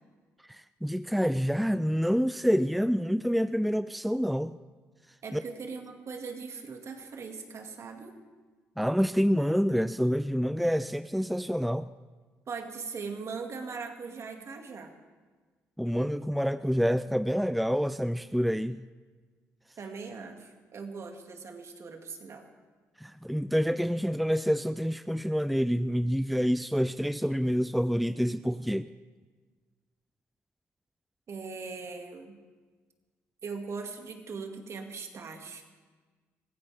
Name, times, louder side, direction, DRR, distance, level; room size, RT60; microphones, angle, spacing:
voice 1, 0.5-4.5 5.3-5.4 8.8-11.9 15.8-18.8 23.0-28.9, equal, ahead, 13 dB, 0.4 m, -27 dB
voice 2, 5.2-8.1 12.5-14.9 19.8-22.4 31.3-32.4 33.4-35.6, right 5 dB, 55° right, 4 dB, 2.2 m, -40 dB
24.0 x 16.0 x 3.5 m, 1.4 s
supercardioid pair, 55°, 6 cm